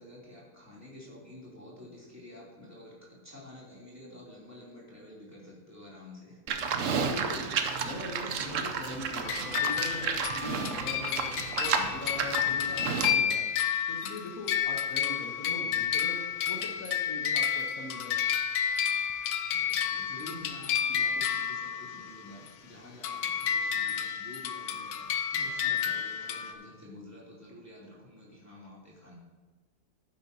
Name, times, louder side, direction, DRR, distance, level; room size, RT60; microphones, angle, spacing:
voice 1, 0.0-2.9 3.2-6.4 19.5-29.1, left 1 dB, 10° right, -7 dB, 2.8 m, -49 dB
Livestock farm animals working animals, 6.5-13.2, right 6 dB, 60° right, 1.0 m, -32 dB
voice 2, 7.0-7.5 7.8-13.5 13.9-16.2 16.5-18.2, left 2 dB, 60° left, -1 dB, 1.5 m, -41 dB
sound 1, 9.2-22.5 23.0-26.5, left 8 dB, 75° left, 1.2 m, -31 dB
11.5 x 9.7 x 2.8 m, 1.3 s
omnidirectional pair, 1.7 m